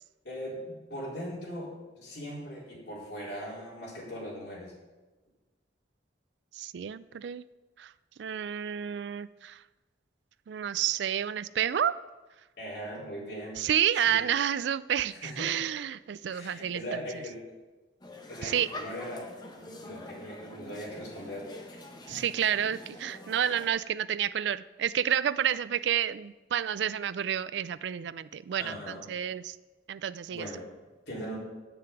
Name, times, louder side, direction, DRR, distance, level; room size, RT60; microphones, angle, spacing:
voice 1, 0.2-4.7 12.6-13.6 14.0-14.2 15.1-15.6 16.3-17.4 18.3-19.3 19.6-21.6 22.1-22.2 28.6-29.1 30.3-30.6 31.1-31.4, equal, 65° left, -6 dB, 4.0 m, -40 dB
voice 2, 6.5-7.4 7.8-7.9 8.2-9.6 10.5-12.0 13.6-17.0 18.4-18.7 22.1-29.6 29.9-30.5, right 9 dB, 70° right, 16 dB, 0.3 m, -30 dB
sound 1, 18.0-23.7, left 2 dB, 25° left, 1.0 m, -46 dB
7.7 x 6.8 x 8.2 m, 1.2 s
head